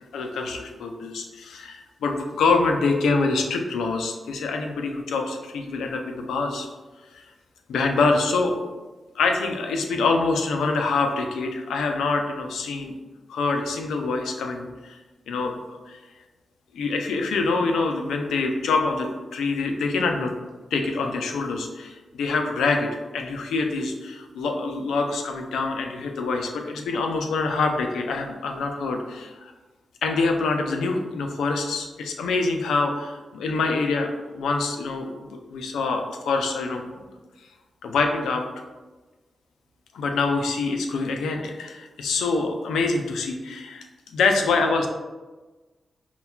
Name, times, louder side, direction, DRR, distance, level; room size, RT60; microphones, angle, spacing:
voice 1, 0.1-6.7 7.1-7.2 7.7-8.5 9.2-13.0 13.3-15.0 15.3-15.6 15.9-16.0 16.7-20.3 20.7-29.5 30.0-36.9 37.8-38.4 39.9-43.8 44.1-44.9, left 3 dB, 90° left, 4 dB, 0.4 m, -25 dB
5.4 x 2.2 x 2.3 m, 1.2 s
supercardioid pair, 45°, 0 cm